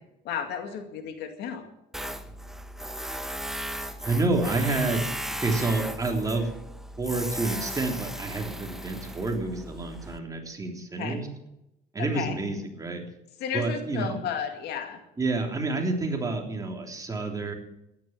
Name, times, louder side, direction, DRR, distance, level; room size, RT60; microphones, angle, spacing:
voice 1, 0.2-1.7 11.0-11.2 12.0-12.4 13.4-15.0, left 8 dB, 80° left, 6 dB, 2.3 m, -33 dB
Tools, 1.9-10.2, equal, ahead, 1.0 m, -36 dB
voice 2, 4.0-5.0 5.4-6.5 7.0-11.3 11.9-13.0 13.5-14.2 15.2-17.5, right 3 dB, 20° right, 1 dB, 3.4 m, -28 dB
13.5 x 11.0 x 7.5 m, 0.87 s
cardioid pair, 110°, 17 cm